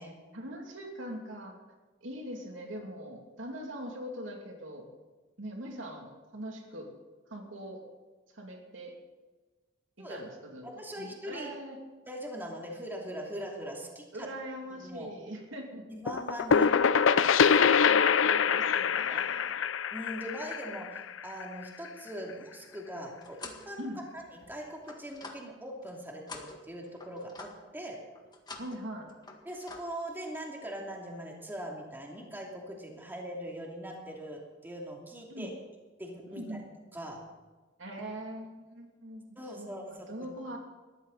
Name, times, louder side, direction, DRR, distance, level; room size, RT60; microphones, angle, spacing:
voice 1, 0.3-1.6 2.0-4.9 5.4-6.9 7.3-7.8 8.3-8.9 10.0-10.6 11.0-11.8 14.1-15.8 17.8-19.6 23.8-24.0 28.6-29.1 35.3-35.5 36.3-36.7 37.8-39.2 39.5-40.6, right 1 dB, 80° right, 1 dB, 2.7 m, -42 dB
voice 2, 10.6-11.5 12.1-14.3 14.7-15.1 15.9-16.8 19.1-19.2 19.9-23.9 24.1-28.0 29.4-35.5 36.0-36.6 36.9-37.2 39.4-40.3, equal, 10° right, -1 dB, 2.7 m, -41 dB
sound 1, 16.1-21.6, left 6 dB, 85° left, 0.5 m, -24 dB
Car gearbox changing position speed, 22.7-23.7 24.1-25.9 26.3-27.7 28.2-28.8 29.1-29.8, left 3 dB, 20° left, 1.8 m, -47 dB
19.5 x 14.0 x 4.1 m, 1.3 s
head